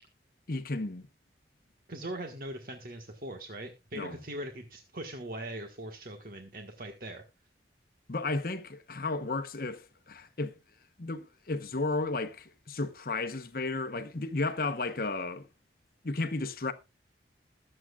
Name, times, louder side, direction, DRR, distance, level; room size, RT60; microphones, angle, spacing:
voice 1, 0.5-1.1 3.9-4.2 8.1-10.5 11.0-15.5 16.0-16.7, left 3 dB, 55° left, 0.9 m, -33 dB
voice 2, 1.9-7.2, right 1 dB, 50° right, 1.5 m, -41 dB
21.0 x 7.6 x 2.4 m
head